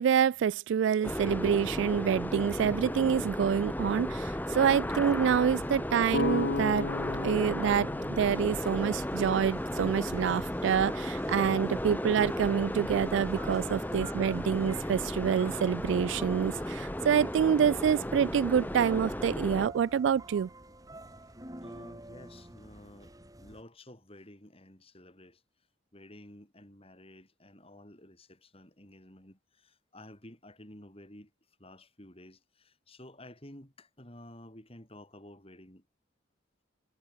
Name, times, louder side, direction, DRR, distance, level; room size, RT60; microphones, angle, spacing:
voice 1, 0.0-6.9 7.2-20.5, right 7 dB, 75° right, 0.3 m, -27 dB
sound 1, 1.0-19.7, left 1 dB, 10° left, 1.4 m, -34 dB
sound 2, 6.1-9.9, left 3 dB, 60° left, 0.6 m, -35 dB
sound 3, 8.3-23.6, right 1 dB, 20° right, 4.9 m, -49 dB
voice 2, 21.6-23.1 23.4-25.4 25.9-31.3 31.6-35.8, left 1 dB, 30° left, 7.5 m, -52 dB
head